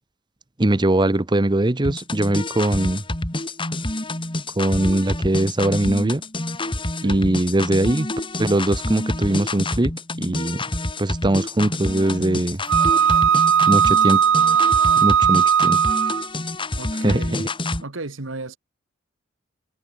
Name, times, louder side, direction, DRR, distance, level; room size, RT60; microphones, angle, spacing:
voice 1, 0.6-3.0 4.6-6.2 7.0-8.1 8.4-9.9 10.2-10.6 11.0-12.6 13.7-14.2 15.0-15.8 16.9-17.5, right 1 dB, 25° right, 0.8 m, -21 dB
sound 1, 1.8-17.8, left 2 dB, 25° left, 2.7 m, -28 dB
voice 2, 6.9-7.3 16.8-17.5 17.8-18.6, right 2 dB, 85° right, 1.7 m, -34 dB
Wind instrument woodwind instrument, 12.7-16.3, right 8 dB, 70° right, 0.5 m, -17 dB
head